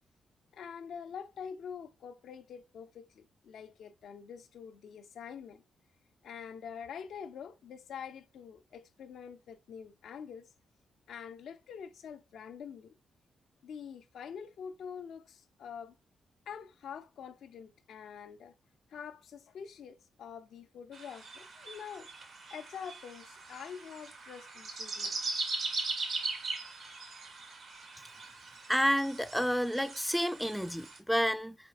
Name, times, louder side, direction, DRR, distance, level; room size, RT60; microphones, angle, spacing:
voice 1, 0.5-5.6 6.2-10.5 11.1-13.0 13.6-15.9 16.5-18.5 18.9-22.1 22.5-25.2, left 7 dB, 75° left, 0.4 m, -46 dB
sound 1, 20.9-31.0, right 3 dB, 75° right, 1.2 m, -40 dB
voice 2, 28.7-31.6, equal, ahead, 0.3 m, -30 dB
4.3 x 4.2 x 2.3 m
supercardioid pair, 45°, 0 cm